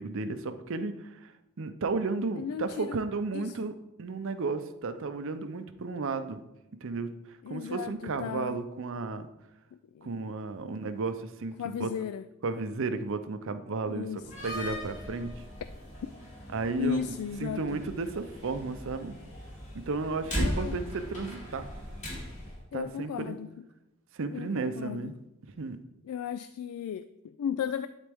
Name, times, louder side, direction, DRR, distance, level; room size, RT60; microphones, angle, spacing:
voice 1, 0.0-1.3 1.6-6.4 6.8-9.3 10.0-11.9 12.4-15.3 16.5-19.1 19.9-21.7 22.7-23.4 24.1-25.2 25.6-25.8, right 3 dB, 60° right, 10 dB, 0.6 m, -33 dB
voice 2, 2.3-3.0 3.3-3.5 7.4-8.6 9.9-10.1 10.6-10.7 11.6-12.2 13.8-14.2 16.8-17.8 20.3-20.8 22.7-23.5 24.3-25.1 26.0-27.9, left 8 dB, 80° left, 12 dB, 0.3 m, -35 dB
Slam, 14.2-22.6, equal, 30° left, 2.4 m, -38 dB
11.5 x 4.1 x 3.5 m, 0.92 s
head